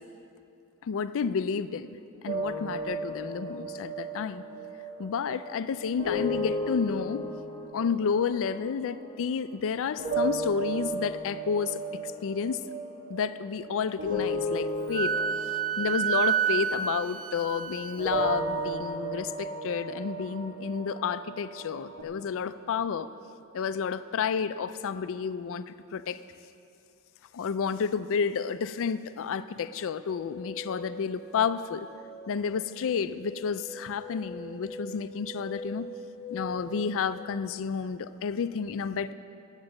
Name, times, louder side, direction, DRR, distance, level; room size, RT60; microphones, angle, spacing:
voice 1, 0.8-4.4 5.0-7.2 7.7-11.8 12.2-12.6 13.1-15.2 15.8-23.1 23.5-26.2 27.3-31.9 32.3-35.9 36.3-39.1, left 6 dB, 65° left, 13 dB, 0.4 m, -31 dB
sound 1, 2.3-9.6 10.0-17.6 18.0-22.0, right 1 dB, 55° right, 2.3 m, -34 dB
Wind instrument woodwind instrument, 14.9-18.4, right 8 dB, 40° right, 0.5 m, -29 dB
sound 2, 30.1-37.3, equal, ahead, 0.9 m, -43 dB
10.5 x 8.1 x 7.7 m, 2.6 s
head